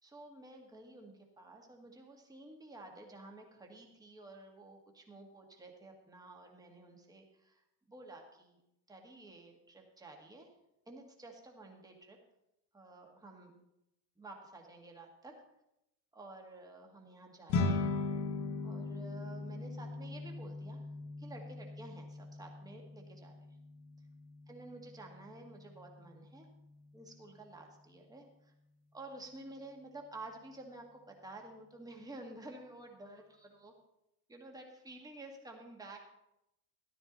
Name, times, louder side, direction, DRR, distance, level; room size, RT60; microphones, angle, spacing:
voice 1, 0.0-8.6 8.9-10.5 10.9-12.2 12.7-13.6 14.2-15.4 16.1-17.8 18.6-20.8 21.2-23.3 24.5-26.5 26.9-28.5 28.9-33.7 34.3-36.0, right 2 dB, 10° right, 2 dB, 1.7 m, -51 dB
sound 1, 17.5-27.0, left 3 dB, 40° left, 1.4 m, -39 dB
13.5 x 12.0 x 3.9 m, 0.86 s
cardioid pair, 155°, 44 cm